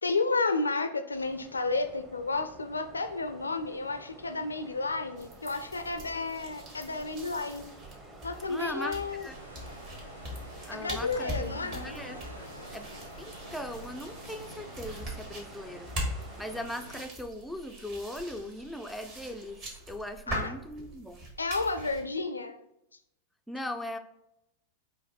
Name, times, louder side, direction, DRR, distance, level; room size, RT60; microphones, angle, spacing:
voice 1, 0.0-7.6 8.2-9.3 10.7-11.9 20.3-20.5 21.4-22.6, left 3 dB, 80° left, 8 dB, 0.4 m, -31 dB
sound 1, 1.1-16.7, right 2 dB, 25° right, 1.0 m, -50 dB
sound 2, 5.2-22.0, right 1 dB, 40° right, 1.6 m, -42 dB
voice 2, 8.5-9.4 10.6-15.9 16.4-19.6 19.9-21.2 23.5-24.0, left 1 dB, ahead, 5 dB, 0.3 m, -39 dB
sound 3, 9.3-17.0, equal, 90° right, 0.5 m, -48 dB
5.0 x 2.6 x 3.8 m, 0.84 s
figure-of-eight pair, 90°, 0 cm